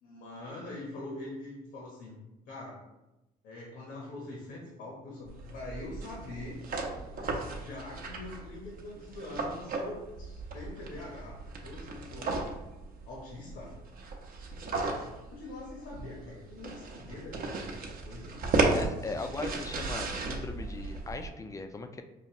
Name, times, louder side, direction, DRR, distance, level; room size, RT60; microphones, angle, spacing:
voice 1, 0.0-2.2 2.5-2.8 3.4-6.6 7.1-12.4 13.1-13.7 15.3-18.5 19.1-19.3, left 2 dB, 75° left, -3 dB, 1.0 m, -44 dB
sound 1, 5.3-21.3, right 3 dB, 55° right, 0.7 m, -35 dB
voice 2, 18.7-22.0, left 3 dB, 20° left, 7 dB, 0.3 m, -38 dB
5.1 x 2.4 x 2.9 m, 1.0 s
cardioid pair, 110°, 17 cm